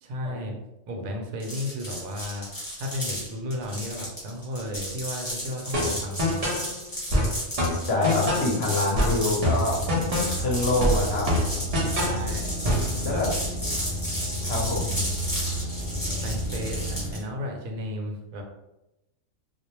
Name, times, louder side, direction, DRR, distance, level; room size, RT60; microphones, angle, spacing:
voice 1, 0.0-0.6 0.9-2.5 2.8-6.4 12.0-12.6 13.1-13.2 14.7-15.2 16.1-18.4, left 1 dB, 90° right, 2 dB, 1.0 m, -34 dB
sound 1, 1.4-17.2, equal, 15° left, 1.1 m, -34 dB
sound 2, 5.7-6.7 7.1-8.6 9.0-10.5 10.8-12.2 12.6-12.9, left 1 dB, 60° right, 0.4 m, -25 dB
voice 2, 7.8-9.8 10.3-11.3 13.0-13.3 14.4-14.8, left 2 dB, 60° left, -3 dB, 0.7 m, -25 dB
sound 3, 9.6-17.1, right 1 dB, 45° left, 0.3 m, -31 dB
2.3 x 2.0 x 2.9 m, 0.94 s
omnidirectional pair, 1.4 m